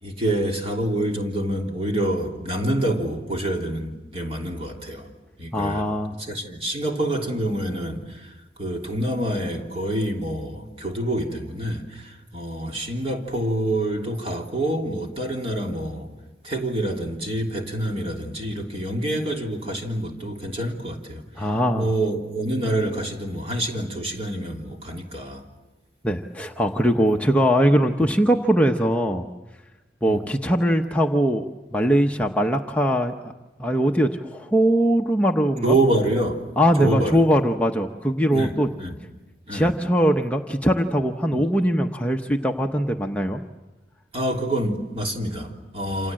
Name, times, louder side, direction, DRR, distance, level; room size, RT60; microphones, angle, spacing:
voice 1, 0.0-5.1 5.4-5.9 6.2-8.3 8.6-16.1 16.4-25.4 28.0-28.1 30.0-30.2 35.6-36.4 36.8-37.2 38.3-39.0 39.5-39.7 41.3-41.4 44.1-46.1, right 1 dB, 35° right, 1 dB, 3.2 m, -27 dB
voice 2, 5.5-6.2 21.4-21.9 26.0-29.2 30.0-31.4 31.7-33.3 33.6-35.8 36.6-38.7 39.5-43.4, equal, 10° left, 2 dB, 0.9 m, -21 dB
28.0 x 27.5 x 7.7 m, 1.1 s
head